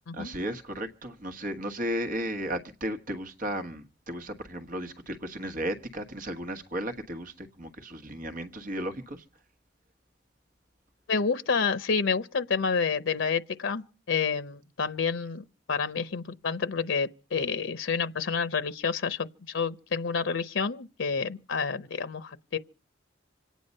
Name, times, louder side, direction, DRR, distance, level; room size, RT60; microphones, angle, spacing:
voice 1, 0.2-9.2, right 1 dB, 45° right, 1.4 m, -34 dB
voice 2, 11.1-22.6, left 5 dB, 90° left, 0.7 m, -29 dB
26.0 x 9.4 x 5.4 m
head